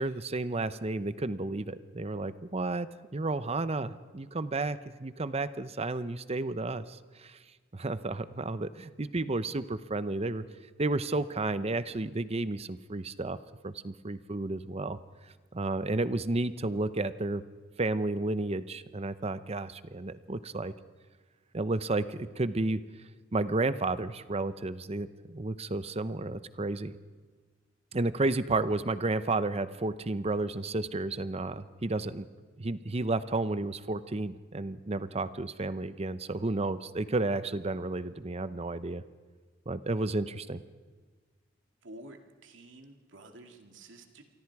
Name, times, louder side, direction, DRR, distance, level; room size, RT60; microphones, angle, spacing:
voice 1, 0.0-7.4 7.7-10.4 10.8-13.4 13.6-15.0 15.5-17.4 17.8-20.7 21.5-22.8 23.3-26.9 27.9-32.3 32.6-39.0 39.7-40.6, right 2 dB, 35° right, 13 dB, 0.8 m, -32 dB
voice 2, 41.8-42.2 42.4-44.2, right 1 dB, 90° right, 4 dB, 2.4 m, -50 dB
28.5 x 24.0 x 4.8 m, 1.4 s
head